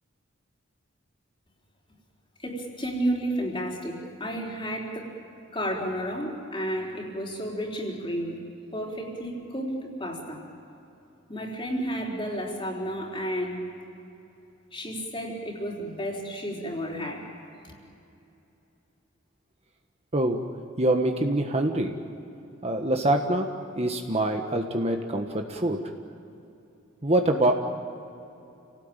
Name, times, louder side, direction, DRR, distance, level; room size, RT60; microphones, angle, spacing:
voice 1, 2.4-5.1 5.5-8.4 8.7-10.4 11.3-13.6 14.7-17.3 17.6-17.7, equal, 25° left, -1 dB, 4.3 m, -32 dB
voice 2, 20.1-20.4 20.8-21.9 22.6-25.8 27.0-27.5, right 1 dB, 30° right, 4 dB, 1.4 m, -25 dB
29.5 x 18.0 x 9.1 m, 2.8 s
head